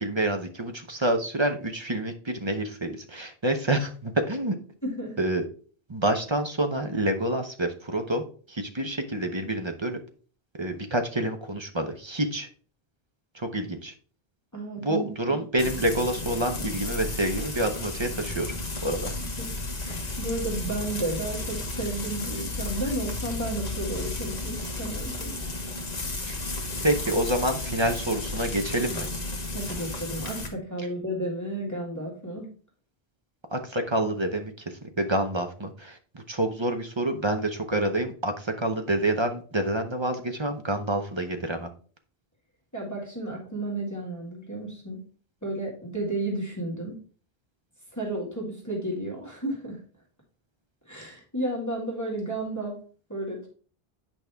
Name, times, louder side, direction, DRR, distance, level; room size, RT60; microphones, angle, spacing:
voice 1, 0.0-4.6 5.2-5.4 5.9-10.0 10.5-12.5 13.3-13.9 14.8-18.5 18.8-19.1 26.3-26.4 26.8-29.1 33.5-34.5 34.8-41.7, right 1 dB, 30° right, 6 dB, 0.8 m, -27 dB
voice 2, 4.8-5.1 14.5-15.4 19.2-19.5 19.8-25.3 29.5-32.5 42.7-45.0 45.4-46.9 47.9-49.8 50.9-52.8 53.1-53.5, right 1 dB, 15° left, -4 dB, 2.1 m, -32 dB
Frying (food), 15.6-30.5, left 2 dB, 40° left, 1.4 m, -33 dB
8.6 x 5.3 x 3.5 m, 0.42 s
omnidirectional pair, 1.0 m